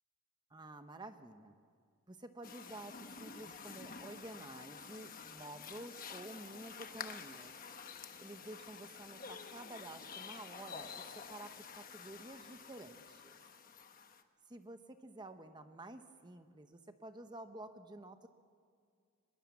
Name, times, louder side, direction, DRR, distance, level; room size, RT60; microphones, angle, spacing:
voice 1, 0.5-1.6 2.1-7.5 8.2-13.2 14.5-18.3, right 2 dB, 20° right, 8 dB, 0.9 m, -51 dB
sound 1, 2.4-14.2, left 6 dB, 40° left, 1.2 m, -50 dB
23.5 x 21.0 x 7.1 m, 2.2 s
head